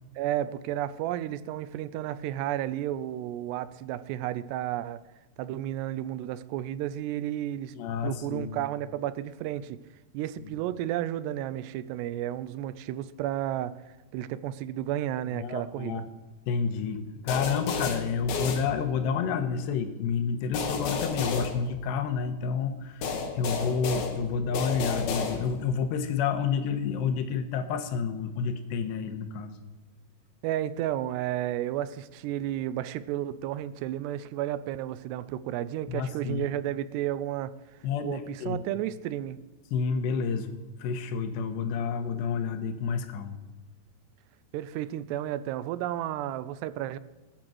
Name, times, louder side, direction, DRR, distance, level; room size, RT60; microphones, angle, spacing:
voice 1, 0.2-5.0 5.4-7.7 8.0-9.8 10.1-13.8 14.1-16.0 30.4-37.5 38.0-39.4 44.5-47.0, right 12 dB, 80° right, 15 dB, 2.7 m, -32 dB
voice 2, 7.8-8.6 15.3-16.0 16.5-29.6 35.8-36.5 37.8-38.6 39.7-40.5 40.8-43.4, left 6 dB, 85° left, 8 dB, 3.3 m, -29 dB
sound 1, 17.3-19.2 20.5-22.3 23.0-25.8, left 5 dB, 65° left, 3.3 m, -32 dB
19.0 x 9.0 x 7.8 m, 1.1 s
omnidirectional pair, 4.9 m